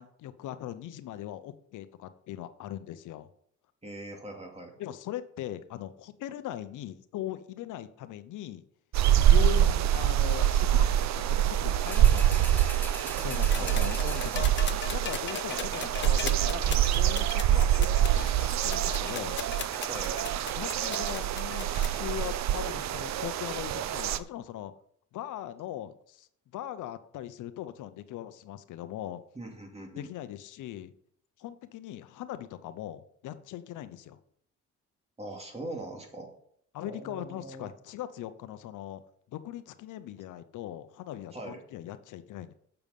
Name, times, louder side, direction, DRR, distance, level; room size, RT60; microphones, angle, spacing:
voice 1, 0.0-3.3 4.8-8.6 9.2-12.7 13.2-19.4 20.6-24.7 25.1-26.3 26.5-29.2 30.0-30.9 31.4-34.2 36.7-39.0 39.3-42.5, left 12 dB, 80° left, 12 dB, 0.8 m, -40 dB
voice 2, 3.8-4.8 13.6-14.1 19.9-20.3 29.3-30.1 35.2-36.3 36.8-37.7 41.3-41.6, right 2 dB, 20° right, 2 dB, 2.7 m, -41 dB
sound 1, 8.9-24.2, right 11 dB, 65° right, 0.6 m, -25 dB
sound 2, 11.8-14.9 15.4-15.5, left 1 dB, 5° left, 0.5 m, -43 dB
sound 3, 13.4-22.1 23.3-23.4, left 7 dB, 40° left, 0.8 m, -39 dB
8.0 x 7.0 x 5.3 m, 0.65 s
cardioid pair, 90°, 30 cm